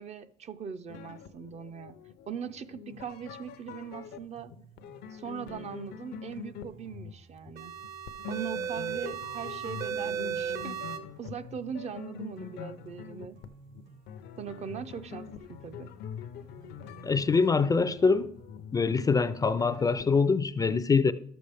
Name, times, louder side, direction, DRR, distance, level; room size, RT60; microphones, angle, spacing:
voice 1, 0.0-2.0 2.3-4.5 5.1-7.7 8.3-10.8 11.2-13.4 14.4-15.9, right 7 dB, 40° right, 0.5 m, -40 dB
sound 1, 0.9-20.1, left 7 dB, 75° left, 0.5 m, -44 dB
sound 2, 2.9-18.9, right 4 dB, 85° right, 3.7 m, -56 dB
sound 3, 7.6-11.0, right 8 dB, 65° right, 1.0 m, -35 dB
voice 2, 17.0-18.3 18.7-21.1, left 4 dB, 20° left, 0.4 m, -24 dB
12.0 x 6.9 x 3.4 m
cardioid pair, 110°, 17 cm